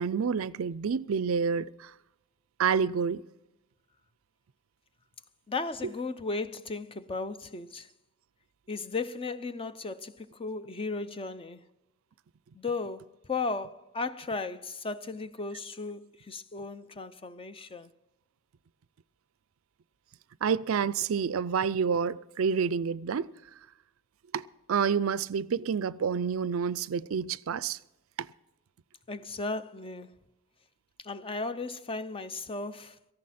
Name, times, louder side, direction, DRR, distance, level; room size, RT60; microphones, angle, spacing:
voice 1, 0.0-1.9 2.6-3.2 20.4-23.3 24.3-27.8 28.2-28.3, right 6 dB, 70° right, 0.4 m, -28 dB
voice 2, 5.5-7.9 8.7-11.6 12.5-17.9 29.1-30.1 31.0-33.1, left 3 dB, 25° left, 0.6 m, -35 dB
17.5 x 14.5 x 4.2 m
head